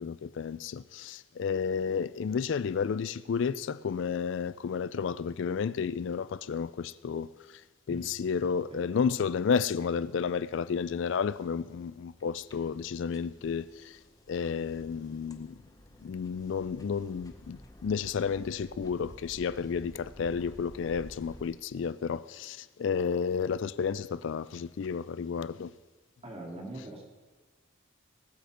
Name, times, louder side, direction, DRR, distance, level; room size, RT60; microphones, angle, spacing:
voice 1, 0.0-7.3 7.9-14.0 14.3-15.5 16.0-25.7, left 6 dB, 60° left, 0.4 m, -31 dB
sound 1, 11.3-21.5, left 1 dB, 15° left, 0.9 m, -53 dB
voice 2, 26.2-27.0, right 1 dB, 30° right, 2.6 m, -42 dB
20.0 x 7.9 x 5.0 m
head